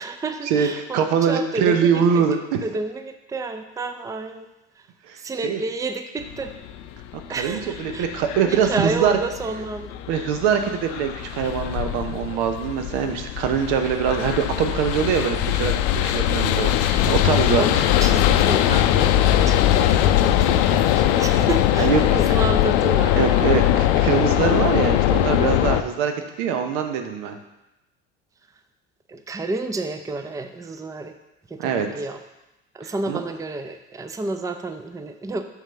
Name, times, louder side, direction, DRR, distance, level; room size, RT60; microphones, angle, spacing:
voice 1, 0.0-2.2 2.6-4.5 4.8-4.9 5.1-6.5 7.3-8.1 8.5-10.0 17.6-23.8 29.1-31.1 31.5-32.2 32.7-35.4, right 3 dB, 10° right, 7 dB, 0.5 m, -30 dB
voice 2, 0.9-2.6 5.1-5.2 5.4-5.6 7.3-9.1 10.1-17.8 21.8-22.0 23.2-26.1 26.4-27.4 31.6-31.9 32.8-33.2, right 7 dB, 75° right, 6 dB, 0.9 m, -23 dB
sound 1, 6.2-25.8, left 12 dB, 75° left, 0.5 m, -21 dB
5.9 x 3.8 x 5.6 m, 0.94 s
hypercardioid pair, 70°, 36 cm